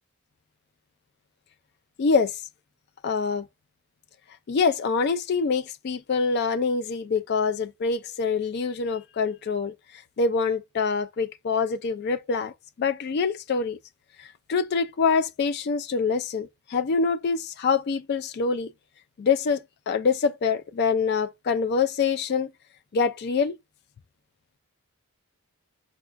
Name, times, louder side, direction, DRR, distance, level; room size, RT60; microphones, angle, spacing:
voice 1, 2.0-2.4 3.0-3.5 4.5-9.7 10.2-13.8 14.2-18.7 19.2-22.5 22.9-23.5, left 5 dB, 45° left, 0.3 m, -25 dB
4.5 x 2.4 x 2.4 m
head